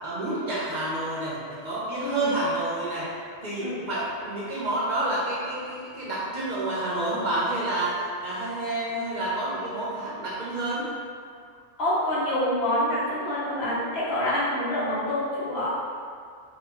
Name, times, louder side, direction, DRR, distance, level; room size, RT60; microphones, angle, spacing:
voice 1, 0.0-3.1 3.4-10.9, right 1 dB, 50° right, -8 dB, 0.7 m, -29 dB
voice 2, 2.0-2.3 3.6-3.9 11.8-15.9, left 1 dB, 65° left, -8 dB, 1.1 m, -27 dB
3.5 x 2.3 x 2.9 m, 2.2 s
omnidirectional pair, 1.1 m